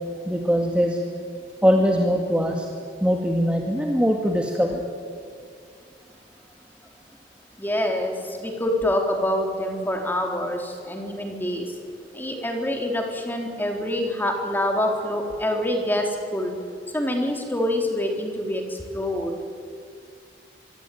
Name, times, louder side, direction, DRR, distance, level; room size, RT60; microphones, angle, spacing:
voice 1, 0.3-1.0 1.6-2.7 3.0-4.8, equal, 5° right, 1 dB, 2.1 m, -21 dB
voice 2, 7.6-11.7 12.1-16.6 16.9-19.4, left 1 dB, 10° left, 2 dB, 3.9 m, -26 dB
25.5 x 23.0 x 9.4 m, 2.4 s
head